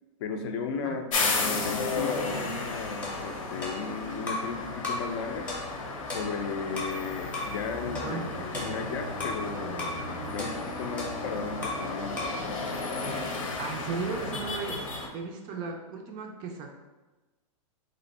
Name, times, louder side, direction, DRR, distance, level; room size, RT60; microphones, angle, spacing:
voice 1, 0.2-5.5 6.1-8.2 8.5-9.8 10.3-12.2, left 5 dB, 50° left, 5 dB, 0.5 m, -35 dB
sound 1, 1.1-15.1, left 3 dB, 85° left, 0.8 m, -34 dB
sound 2, 3.0-4.5 4.8-5.1 5.5-7.0 7.3-7.6 7.9-9.4 9.8-10.0 10.4-11.9 12.2-12.4, left 2 dB, 10° left, 0.7 m, -37 dB
sound 3, 6.5-11.7, left 1 dB, 80° right, 0.6 m, -47 dB
voice 2, 8.0-8.3 13.6-14.8 15.1-16.7, right 4 dB, 25° right, 3 dB, 0.3 m, -35 dB
3.1 x 2.6 x 4.1 m, 1.2 s
supercardioid pair, 155°, 17 cm